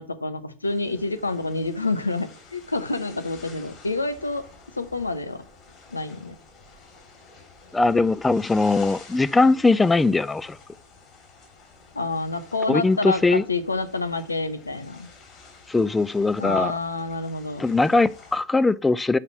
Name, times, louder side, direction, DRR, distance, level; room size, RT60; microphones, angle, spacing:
voice 1, 0.0-4.4 4.8-5.4 5.9-6.3 11.9-15.1 16.4-17.6, left 3 dB, 80° left, 0.8 m, -28 dB
sound 1, 0.6-18.4, left 4 dB, 25° left, 2.8 m, -50 dB
voice 2, 7.7-10.6 12.7-13.4 15.7-16.7 17.6-19.2, left 3 dB, 10° left, 0.3 m, -20 dB
5.8 x 5.4 x 6.9 m
figure-of-eight pair, 90°, 0 cm